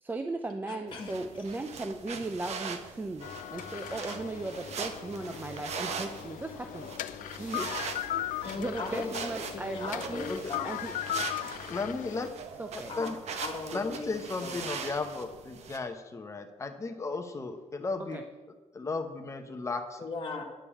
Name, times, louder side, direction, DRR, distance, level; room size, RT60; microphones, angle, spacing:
voice 1, 0.0-7.0 7.4-7.7 8.6-10.3 10.6-10.9 12.6-12.9 18.1-18.2, right 2 dB, 15° right, 6 dB, 0.4 m, -37 dB
voice 2, 0.7-1.1 5.7-5.8 8.4-10.7 12.9-14.6 20.0-20.4, left 3 dB, 40° left, 1 dB, 1.7 m, -38 dB
sound 1, 0.9-15.8, right 6 dB, 55° right, 0.9 m, -41 dB
sound 2, 3.2-12.3, left 11 dB, 75° left, 0.5 m, -38 dB
voice 3, 11.7-12.3 13.0-13.2 13.7-18.2 18.7-20.0, left 3 dB, 20° left, 6 dB, 0.8 m, -35 dB
10.0 x 5.3 x 8.2 m, 1.2 s
cardioid pair, 180°, 14 cm